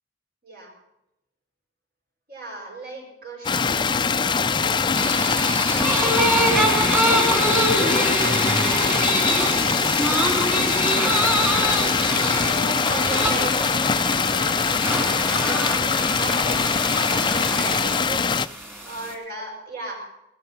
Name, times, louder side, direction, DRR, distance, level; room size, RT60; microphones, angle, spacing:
voice 1, 2.3-6.6 6.9-20.1, right 2 dB, 55° right, 0 dB, 6.5 m, -37 dB
sound 1, 3.4-18.5, left 5 dB, 25° left, 0.4 m, -22 dB
sound 2, 4.9-19.1, right 1 dB, 10° right, 2.8 m, -25 dB
18.5 x 12.5 x 5.6 m, 0.88 s
head